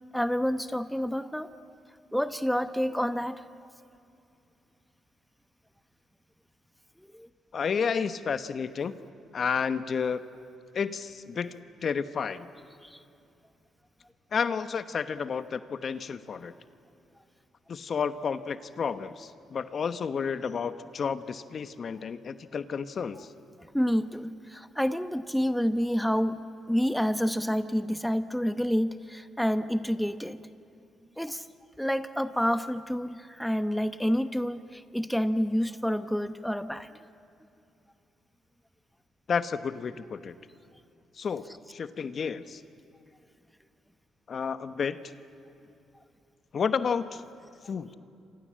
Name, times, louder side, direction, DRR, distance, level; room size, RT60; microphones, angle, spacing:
voice 1, 0.1-1.5 2.1-3.5 7.0-7.3 12.8-13.0 23.7-30.4 31.2-31.5 31.8-37.0, equal, ahead, 11 dB, 0.9 m, -28 dB
voice 2, 7.5-8.9 9.3-10.2 10.7-12.5 14.3-16.5 17.7-23.3 39.3-40.3 41.2-41.4 41.7-42.6 44.3-45.0 46.5-47.2 47.7-47.9, left 6 dB, 50° left, 12 dB, 1.1 m, -31 dB
28.0 x 26.0 x 7.6 m, 2.7 s
cardioid pair, 90°, 0 cm